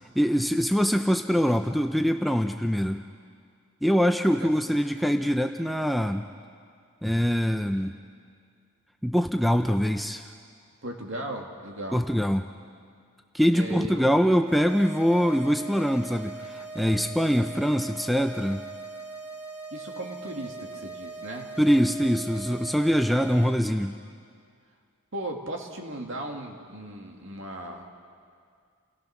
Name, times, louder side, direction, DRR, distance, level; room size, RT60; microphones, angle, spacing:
voice 1, 0.2-3.0 3.8-6.2 7.0-7.9 9.0-10.3 11.9-12.5 13.3-18.6 21.6-23.9, equal, ahead, 5 dB, 0.5 m, -23 dB
voice 2, 10.8-12.0 13.5-14.2 19.7-21.5 25.1-27.9, right 1 dB, 60° right, 2 dB, 2.4 m, -37 dB
sound 1, 14.5-23.5, right 3 dB, 85° right, 7.9 m, -40 dB
29.5 x 17.5 x 6.0 m, 2.2 s
head